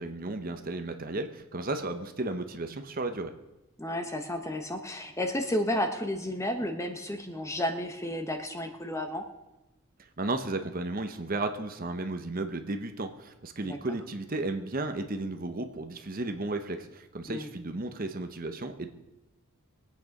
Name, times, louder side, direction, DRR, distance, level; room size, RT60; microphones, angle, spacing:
voice 1, 0.0-3.3 10.2-18.9, right 2 dB, 40° right, 7 dB, 0.9 m, -34 dB
voice 2, 3.8-9.2 13.6-13.8 17.3-17.5, left 1 dB, 15° left, 6 dB, 1.2 m, -32 dB
23.0 x 8.7 x 5.3 m, 0.98 s
head